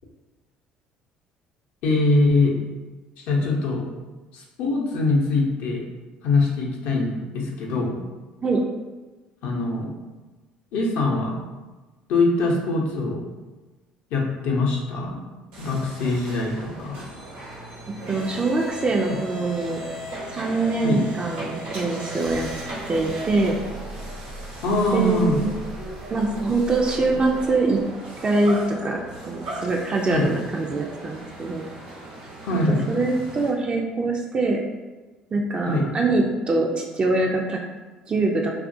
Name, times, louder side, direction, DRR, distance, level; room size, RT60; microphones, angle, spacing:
voice 1, 1.8-2.6 3.2-3.9 4.3-5.8 6.2-8.0 9.4-9.9 10.7-11.4 12.1-13.3 14.1-15.2 15.6-17.0 19.1-19.2 20.8-21.0 24.6-25.4 30.1-30.3 32.4-32.8 35.6-35.9, left 2 dB, 70° left, -2 dB, 0.6 m, -23 dB
sound 1, 15.5-33.5, right 1 dB, 85° right, 0.9 m, -37 dB
voice 2, 18.1-19.8 20.3-22.5 22.9-23.6 24.9-25.5 26.1-27.8 28.2-31.7 32.9-34.6 35.3-37.6 38.1-38.5, right 3 dB, 35° right, 0 dB, 0.4 m, -23 dB
2.8 x 2.4 x 2.6 m, 1.2 s
supercardioid pair, 70°, 3 cm